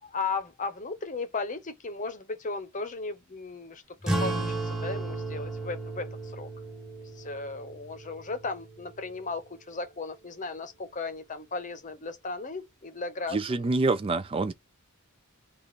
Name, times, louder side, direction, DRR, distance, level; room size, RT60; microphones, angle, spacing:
voice 1, 0.0-6.5 7.2-13.7, left 4 dB, 35° left, 0.8 m, -36 dB
sound 1, 4.0-9.1, right 2 dB, ahead, 1.2 m, -34 dB
voice 2, 13.3-14.5, right 3 dB, 25° right, 0.3 m, -26 dB
3.3 x 2.4 x 3.9 m
head